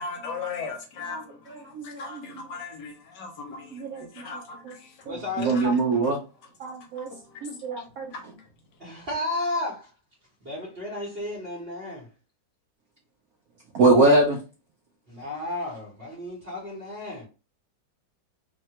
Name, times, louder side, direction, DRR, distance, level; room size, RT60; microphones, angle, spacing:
voice 1, 0.0-5.8 6.9-8.5, left 4 dB, 70° left, 1.2 m, -39 dB
voice 2, 3.7-4.3 5.1-6.2 6.6-7.1 7.4-8.1 13.7-14.4, right 2 dB, 75° right, 0.8 m, -22 dB
voice 3, 5.1-5.7 8.8-9.9 10.4-12.0 15.1-17.3, left 2 dB, 40° right, 0.9 m, -32 dB
3.2 x 2.2 x 2.7 m
omnidirectional pair, 2.2 m